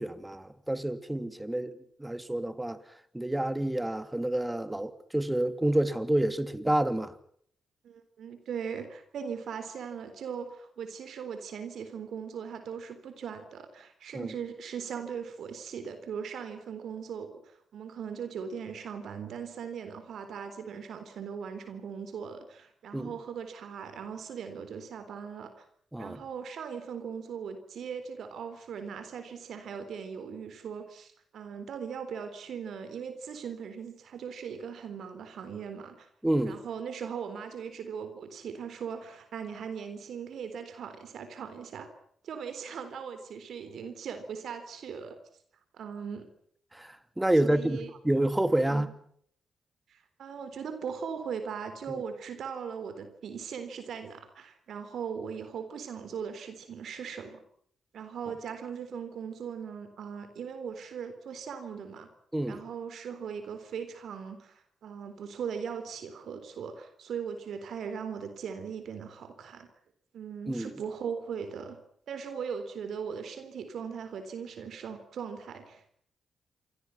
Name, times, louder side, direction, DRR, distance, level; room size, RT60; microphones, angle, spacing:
voice 1, 0.0-1.7 2.0-2.8 3.1-7.1 14.1-14.3 22.9-23.1 25.9-26.2 36.2-36.6 46.7-47.8 48.0-48.9 51.9-52.0 62.3-62.6 70.5-70.7, right 1 dB, 15° right, 2.9 m, -28 dB
voice 2, 7.8-25.7 26.0-36.1 36.4-41.9 42.2-45.2 45.7-46.3 47.4-47.9 48.7-48.9 49.9-57.4 57.9-62.1 62.5-69.7 70.1-71.8 72.1-75.9, right 7 dB, 70° right, 3.8 m, -39 dB
28.5 x 24.5 x 5.8 m
hypercardioid pair, 40°, 0 cm